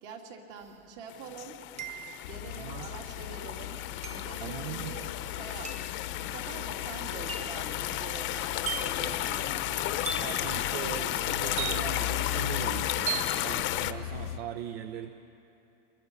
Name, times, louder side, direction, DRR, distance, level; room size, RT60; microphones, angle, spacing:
voice 1, 0.0-1.6 2.3-3.8 4.1-5.8 6.2-12.1, right 5 dB, 55° right, 1 dB, 3.0 m, -45 dB
sound 1, 0.6-0.7 1.8-2.3 4.0-4.4 5.6-6.0 7.3-7.6 8.7-9.1 10.1-10.5 11.6-12.1 13.1-13.4, right 7 dB, 20° right, 1.3 m, -36 dB
sound 2, 1.1-13.9, left 13 dB, 40° left, 0.8 m, -33 dB
sound 3, 2.2-14.4, left 13 dB, 75° left, 0.7 m, -40 dB
voice 2, 2.5-2.9 4.4-4.9 10.2-15.1, right 10 dB, 75° right, 8 dB, 1.0 m, -40 dB
24.5 x 21.5 x 5.5 m, 2.9 s
supercardioid pair, 135°, 30 cm